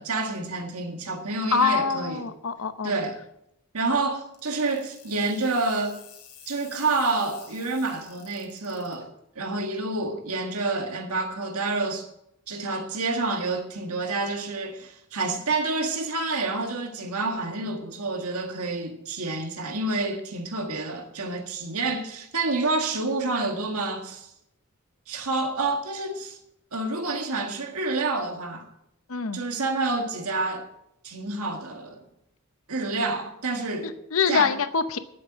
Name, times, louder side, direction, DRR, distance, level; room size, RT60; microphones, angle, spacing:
voice 1, 0.0-2.3 2.8-3.2 3.7-6.0 6.5-9.1 9.4-12.1 12.5-24.3 25.1-26.4 26.7-28.7 29.3-30.7 31.0-32.0 32.7-33.9 34.3-34.5, right 3 dB, 80° right, 1.8 m, -28 dB
voice 2, 1.5-2.9 29.1-29.4 33.8-35.0, left 6 dB, 65° left, 0.8 m, -25 dB
sound 1, 4.3-8.9, left 8 dB, 90° left, 2.3 m, -49 dB
10.5 x 8.2 x 8.0 m
head